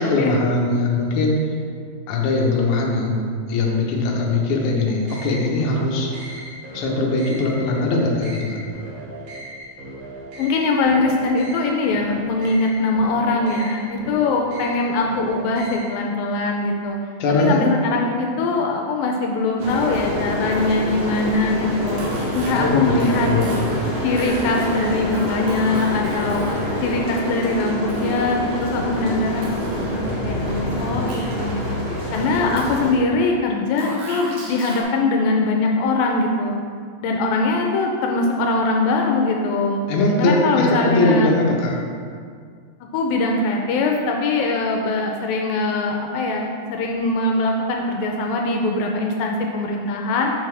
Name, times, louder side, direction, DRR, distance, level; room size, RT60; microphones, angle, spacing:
voice 1, 0.0-1.4 2.1-6.4 6.7-8.6 17.2-17.6 22.5-23.6 39.9-41.8, left 2 dB, 70° left, -2 dB, 2.1 m, -21 dB
sound 1, 5.0-16.0, right 1 dB, 55° right, 2.0 m, -37 dB
voice 2, 10.4-17.0 17.3-22.0 22.3-23.3 24.0-26.4 26.8-31.6 32.1-36.6 37.0-39.8 40.2-41.3 42.9-50.3, left 3 dB, 85° left, 1 dB, 2.3 m, -22 dB
sound 2, 19.6-32.9, left 1 dB, 35° right, 1.5 m, -26 dB
sound 3, 22.0-26.9 27.9-28.8 29.4-30.3 31.1-31.7 32.6-33.2 33.8-34.8, right 2 dB, 85° right, 3.2 m, -37 dB
7.2 x 6.7 x 3.3 m, 2.1 s
omnidirectional pair, 4.1 m